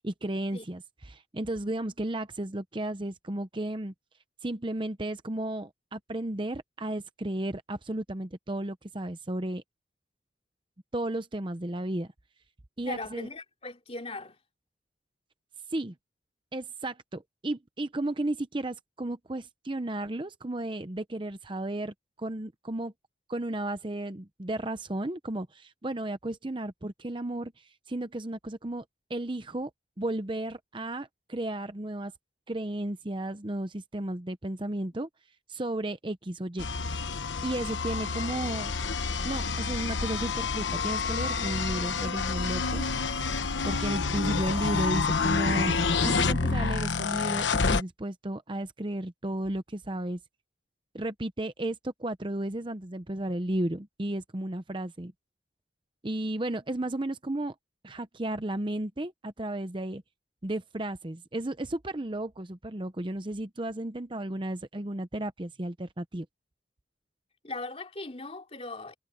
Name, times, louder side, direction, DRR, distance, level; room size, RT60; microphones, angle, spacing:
voice 1, 0.0-3.9 4.4-9.6 10.9-12.1 12.8-13.3 15.7-15.9 16.5-22.9 23.3-28.8 29.1-29.7 30.0-32.1 32.5-35.1 35.5-36.7 37.4-38.7 39.2-42.9 43.6-50.2 50.9-55.1 56.0-57.5 57.8-60.0 60.4-66.3, right 1 dB, 25° right, 0.8 m, -33 dB
voice 2, 12.8-14.4 67.4-68.9, left 2 dB, 35° left, 3.2 m, -39 dB
sound 1, 36.6-47.8, left 4 dB, 85° left, 1.1 m, -28 dB
head